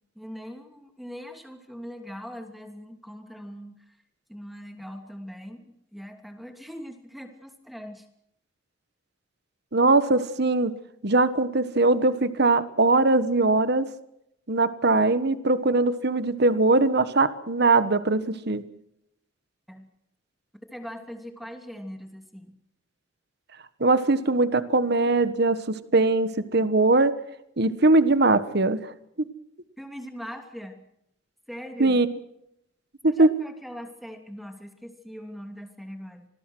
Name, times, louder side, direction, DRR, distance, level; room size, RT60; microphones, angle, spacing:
voice 1, 0.1-4.0 4.3-8.1 19.7-19.9 20.7-22.5 29.8-30.9 31.5-32.0 33.1-36.3, equal, ahead, 5 dB, 2.8 m, -41 dB
voice 2, 9.7-10.7 11.0-13.9 14.5-18.6 23.8-27.1 27.6-29.3 31.8-32.1 33.0-33.3, right 2 dB, 55° right, 13 dB, 1.4 m, -21 dB
27.0 x 20.0 x 6.3 m, 0.80 s
head